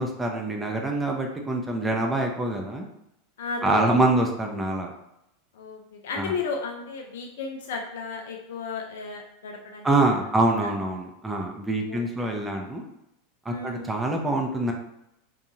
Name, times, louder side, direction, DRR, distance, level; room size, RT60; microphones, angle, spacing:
voice 1, 0.0-2.9 3.6-4.9 6.2-6.3 9.8-12.8 13.5-14.7, right 2 dB, 10° right, 1 dB, 0.5 m, -25 dB
voice 2, 3.4-3.9 5.5-9.9 10.6-10.7 11.9-12.0 13.5-13.9, left 5 dB, 70° left, 2 dB, 0.3 m, -34 dB
2.5 x 2.3 x 2.9 m, 0.82 s
hypercardioid pair, 90°, 0 cm